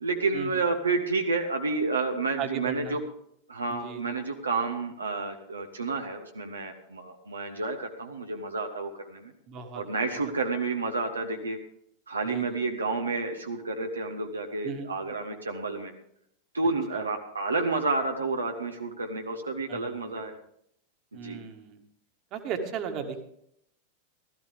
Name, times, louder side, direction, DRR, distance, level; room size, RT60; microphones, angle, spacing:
voice 1, 0.0-3.0 3.5-9.3 9.7-11.6 12.1-15.9 16.5-20.3 21.2-21.4, right 3 dB, 75° right, 3 dB, 1.1 m, -30 dB
voice 2, 2.4-3.0 3.7-4.0 9.5-9.8 12.3-12.6 14.6-14.9 16.9-17.0 19.7-20.2 21.1-21.8 22.3-23.2, right 6 dB, 35° right, 5 dB, 1.8 m, -36 dB
16.0 x 13.5 x 3.6 m, 0.72 s
figure-of-eight pair, 90°, 0 cm